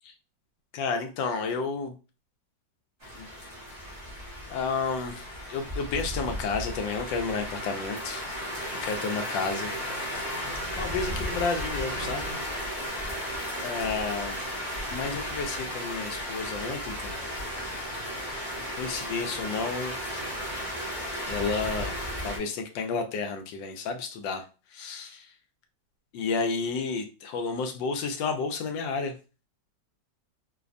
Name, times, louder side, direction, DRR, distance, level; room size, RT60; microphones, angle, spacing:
voice 1, 0.7-1.9 3.1-3.3 4.5-8.3 8.8-9.7 10.8-12.4 13.6-14.4 14.9-17.3 18.8-20.0 21.3-21.9 22.2-24.4 24.7-25.3 26.1-29.1, left 4 dB, 85° left, 5 dB, 1.3 m, -31 dB
sound 1, 3.0-22.4, equal, 40° right, 0.4 m, -34 dB
3.3 x 2.1 x 2.4 m, 0.33 s
omnidirectional pair, 2.0 m